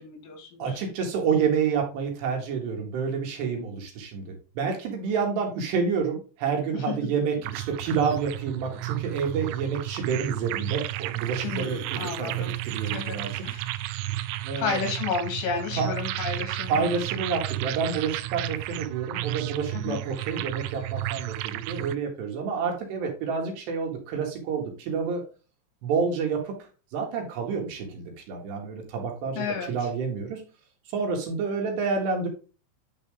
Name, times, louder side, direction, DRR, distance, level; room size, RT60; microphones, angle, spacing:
voice 1, 0.0-0.6 6.9-7.0 11.4-12.5 12.8-13.2 13.4-13.7 14.2-14.3 14.6-16.8 19.8-20.0 29.4-29.7, left 5 dB, 80° left, 3 dB, 4.6 m, -31 dB
voice 2, 0.6-4.3 4.6-13.4 14.4-14.8 15.8-15.9 16.7-25.2 25.8-26.5 26.9-30.4 30.9-32.3, right 5 dB, 70° right, 2 dB, 3.4 m, -29 dB
lerman synths, 7.4-21.9, right 16 dB, 90° right, 3.0 m, -32 dB
9.9 x 4.1 x 3.8 m, 0.34 s
omnidirectional pair, 5.5 m